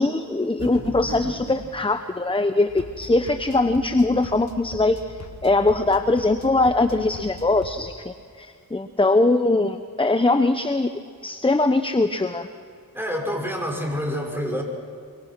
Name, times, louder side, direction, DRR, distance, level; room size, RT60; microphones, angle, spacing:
voice 1, 0.0-5.0 5.4-10.9 11.2-12.5, left 2 dB, 15° left, 9 dB, 0.9 m, -21 dB
sound 1, 0.6-1.7, right 2 dB, 55° right, 5.0 m, -35 dB
sound 2, 2.7-7.8, left 3 dB, 50° left, 1.9 m, -41 dB
voice 2, 12.9-14.6, equal, 5° right, 1 dB, 6.1 m, -27 dB
25.5 x 24.0 x 6.2 m, 2.2 s
cardioid pair, 60°, 36 cm